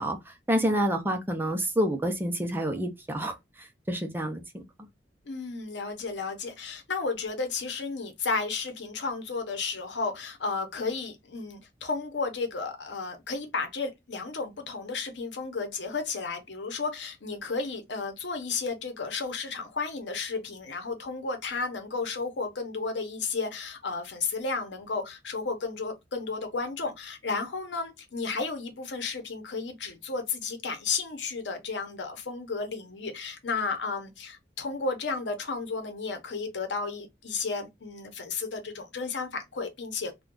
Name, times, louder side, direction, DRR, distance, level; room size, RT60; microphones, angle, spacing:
voice 1, 0.0-4.6, equal, 10° right, 0.5 m, -28 dB
voice 2, 5.3-40.2, left 4 dB, 90° left, 0.8 m, -33 dB
2.4 x 2.2 x 3.6 m
head